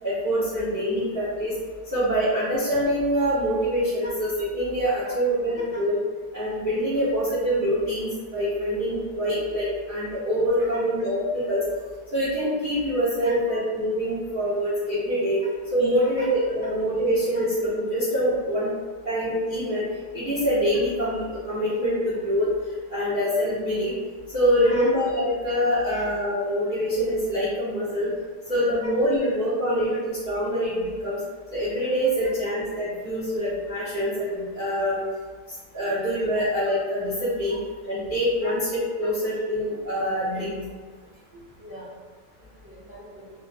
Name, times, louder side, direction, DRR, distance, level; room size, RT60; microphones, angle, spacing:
voice 1, 0.0-1.5 1.9-6.0 6.3-11.6 12.1-15.4 15.7-18.7 19.0-19.9 20.1-22.5 22.9-23.9 24.3-28.1 28.5-31.2 31.5-35.0 35.7-37.6 37.8-38.7 39.0-40.6, equal, 45° right, -13 dB, 0.7 m, -25 dB
voice 2, 13.2-13.6 16.2-16.3 24.6-24.9 25.9-26.0 32.2-32.3 38.4-38.5 40.3-40.4 41.6-41.9 42.6-43.3, equal, ahead, -12 dB, 1.0 m, -41 dB
3.6 x 2.2 x 2.3 m, 1.4 s
omnidirectional pair, 1.9 m